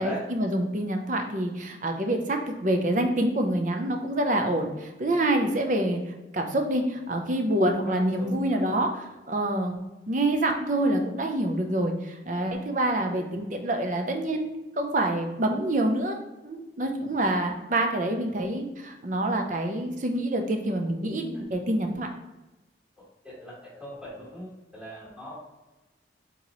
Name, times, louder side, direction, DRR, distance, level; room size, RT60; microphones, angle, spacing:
voice 1, 0.0-6.0 6.3-14.5 14.8-16.2 16.4-22.1, right 1 dB, 45° right, 4 dB, 0.6 m, -26 dB
voice 2, 7.9-8.9 13.1-13.3 23.2-25.5, equal, 5° right, -9 dB, 1.5 m, -41 dB
4.5 x 3.9 x 3.0 m, 1.1 s
head